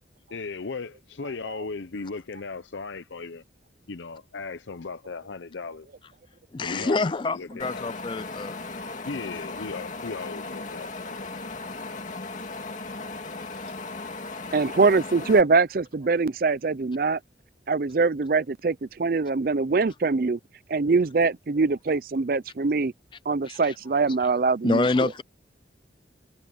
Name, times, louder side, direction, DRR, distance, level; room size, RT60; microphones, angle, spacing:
voice 1, 0.3-3.4 3.9-5.9 6.6-7.9 9.0-11.3 13.6-14.1, left 4 dB, 90° left, 0.7 m, -37 dB
voice 2, 6.5-8.6 23.5-23.7 24.2-24.3 24.6-25.2, left 3 dB, 25° left, 0.3 m, -26 dB
Wind, 7.6-15.4, left 3 dB, 45° left, 2.3 m, -37 dB
voice 3, 14.5-17.2 17.7-20.4 20.7-22.9 23.3-25.1, right 4 dB, 50° right, 0.5 m, -23 dB
head